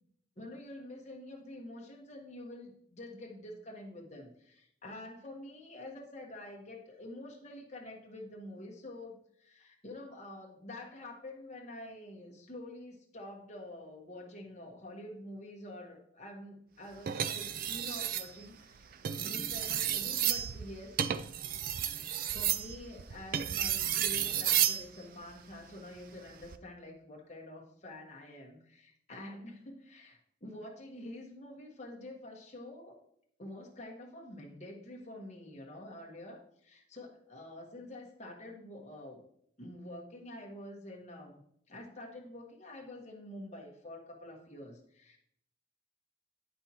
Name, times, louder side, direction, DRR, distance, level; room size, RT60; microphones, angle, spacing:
voice 1, 0.4-21.0 22.2-33.0 33.4-39.2 39.6-41.4 41.7-45.2, left 1 dB, 35° left, 0 dB, 1.2 m, -47 dB
sound 1, 17.1-18.3 18.9-24.8 26.3-26.6, right 10 dB, 45° right, 0.3 m, -32 dB
9.4 x 5.4 x 2.9 m, 0.70 s
head